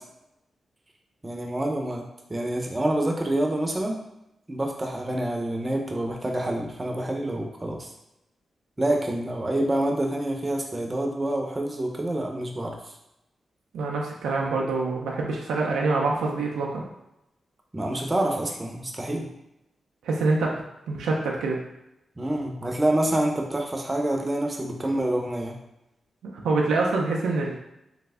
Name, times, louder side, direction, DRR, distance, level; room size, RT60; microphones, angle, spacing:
voice 1, 1.2-4.0 4.5-7.9 8.8-12.8 17.7-19.3 22.2-25.6, right 1 dB, 30° right, 2 dB, 0.7 m, -27 dB
voice 2, 13.7-16.8 20.0-20.5 20.9-21.6 26.3-27.6, right 3 dB, 90° right, -2 dB, 0.4 m, -25 dB
3.3 x 2.0 x 3.5 m, 0.87 s
supercardioid pair, 45°, 0 cm